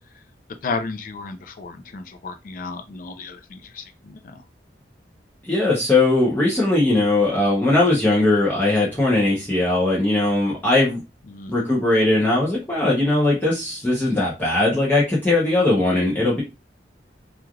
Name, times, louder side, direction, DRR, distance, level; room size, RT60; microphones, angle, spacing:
voice 1, 0.6-4.4 11.3-11.5, left 4 dB, 50° left, 0.4 m, -33 dB
voice 2, 5.4-11.0 11.5-16.4, left 2 dB, 10° left, 0.7 m, -19 dB
3.1 x 2.4 x 2.3 m
head